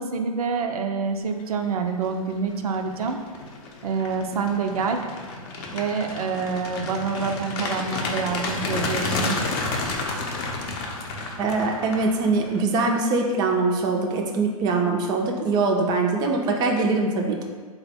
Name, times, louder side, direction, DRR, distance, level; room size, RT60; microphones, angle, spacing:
voice 1, 0.0-3.2 3.8-5.0 5.7-9.4, right 5 dB, 85° right, 4 dB, 0.4 m, -27 dB
sound 1, 1.8-2.1 2.5-12.6, left 3 dB, 45° left, 0.6 m, -31 dB
voice 2, 11.4-17.4, right 3 dB, 20° right, 1 dB, 0.4 m, -23 dB
3.7 x 2.1 x 4.2 m, 1.5 s
hypercardioid pair, 120°, 19 cm